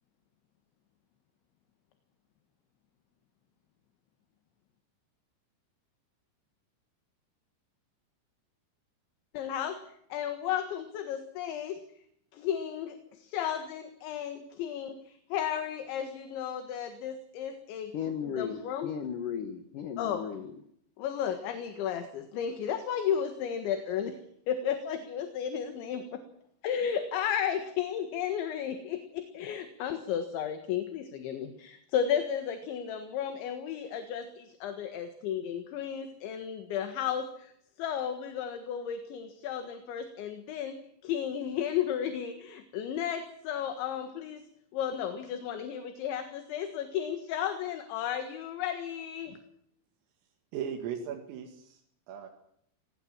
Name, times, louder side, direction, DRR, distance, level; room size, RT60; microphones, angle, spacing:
voice 1, 9.3-9.8 10.1-11.8 12.3-15.0 15.3-17.9 18.4-18.9 20.0-20.2 21.0-24.2 24.5-26.2 26.6-37.3 37.8-40.8 41.0-44.4 44.7-49.3, left 9 dB, 70° left, 8 dB, 3.7 m, -33 dB
voice 2, 17.9-20.5, left 8 dB, 90° left, 9 dB, 1.8 m, -35 dB
voice 3, 50.5-52.3, right 8 dB, 80° right, 2 dB, 4.7 m, -38 dB
25.5 x 19.0 x 7.4 m, 0.70 s
omnidirectional pair, 6.0 m